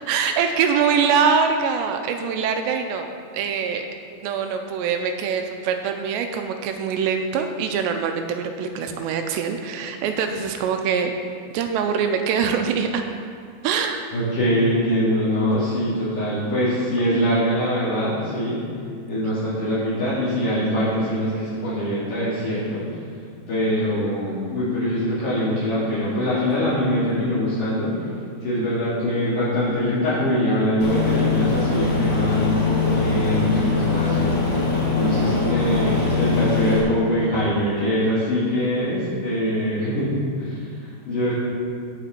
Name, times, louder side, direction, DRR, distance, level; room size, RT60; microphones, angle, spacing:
voice 1, 0.1-3.1 3.3-3.9 4.2-11.1 11.5-13.0 13.6-14.0, right 6 dB, 85° right, 5 dB, 2.7 m, -23 dB
voice 2, 14.1-18.6 19.1-22.9 23.5-27.9 28.4-34.6 34.9-40.1 40.4-41.3, equal, 55° left, -12 dB, 3.9 m, -23 dB
Aircraft, 30.8-36.8, left 4 dB, 30° left, 2.1 m, -22 dB
17.0 x 6.0 x 4.4 m, 2.3 s
omnidirectional pair, 5.1 m